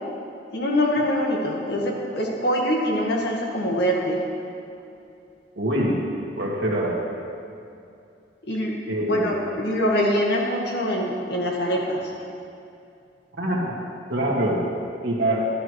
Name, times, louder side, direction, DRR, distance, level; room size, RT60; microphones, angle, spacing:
voice 1, 0.5-4.2 8.5-12.1, equal, 65° left, -2 dB, 1.7 m, -24 dB
voice 2, 5.6-6.0 6.4-7.0 8.9-9.3 13.4-13.7 14.1-14.7 15.0-15.4, right 1 dB, 65° right, -3 dB, 2.0 m, -24 dB
11.5 x 11.5 x 3.2 m, 2.5 s
head